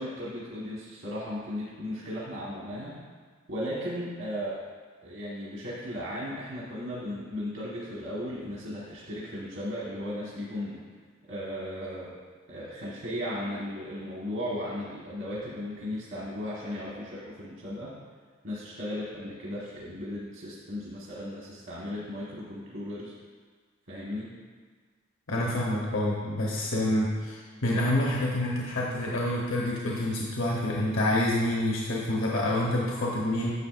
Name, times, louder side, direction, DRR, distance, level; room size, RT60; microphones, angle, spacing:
voice 1, 0.0-3.0 3.5-4.6 5.0-10.8 11.3-12.1 12.5-17.9 18.4-23.1 23.9-24.3, left 1 dB, 65° right, -6 dB, 1.4 m, -36 dB
voice 2, 25.3-33.5, left 1 dB, 75° left, -3 dB, 1.0 m, -27 dB
9.9 x 7.0 x 2.5 m, 1.6 s
head